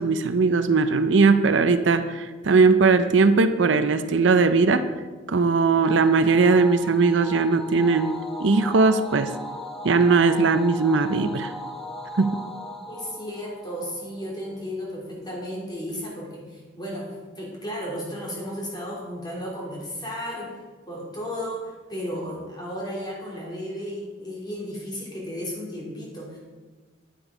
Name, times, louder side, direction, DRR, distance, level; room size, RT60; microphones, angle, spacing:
voice 1, 0.0-4.8 5.3-9.3 9.8-11.5 12.2-12.4, right 4 dB, 70° right, 10 dB, 0.6 m, -19 dB
sound 1, 5.8-14.4, left 1 dB, ahead, 1.3 m, -38 dB
voice 2, 12.9-20.5 20.9-26.4, equal, 20° left, -3 dB, 3.0 m, -34 dB
10.0 x 8.8 x 4.9 m, 1.3 s
head